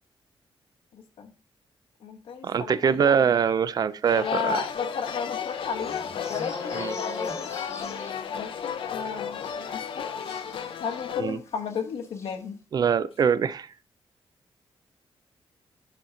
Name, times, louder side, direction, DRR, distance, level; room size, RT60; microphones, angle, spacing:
voice 1, 0.9-1.3 2.0-3.2 4.2-7.6 8.3-10.1 10.8-12.6, left 6 dB, 90° left, 1.1 m, -34 dB
voice 2, 2.4-4.6 6.8-6.9 11.2-11.4 12.7-13.7, right 7 dB, 45° right, 0.3 m, -23 dB
sound 1, 4.1-11.2, left 7 dB, 65° left, 0.6 m, -34 dB
sound 2, 4.6-11.3 11.6-11.8 12.0-12.3, left 3 dB, 30° left, 1.2 m, -41 dB
9.5 x 4.3 x 3.7 m
wide cardioid pair, 145°, 9 cm